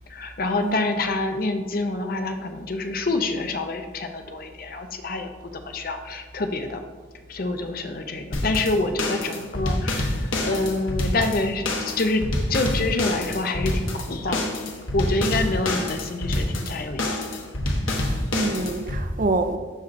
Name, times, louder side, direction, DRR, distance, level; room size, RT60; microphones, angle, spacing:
voice 1, 0.1-6.8 7.3-12.2 12.5-14.5 14.9-17.2, left 2 dB, 45° left, 0.5 m, -27 dB
sound 1, 8.3-19.0, left 1 dB, 85° left, 1.0 m, -27 dB
voice 2, 17.9-19.6, right 3 dB, 40° right, 0.4 m, -27 dB
12.0 x 4.3 x 2.5 m
head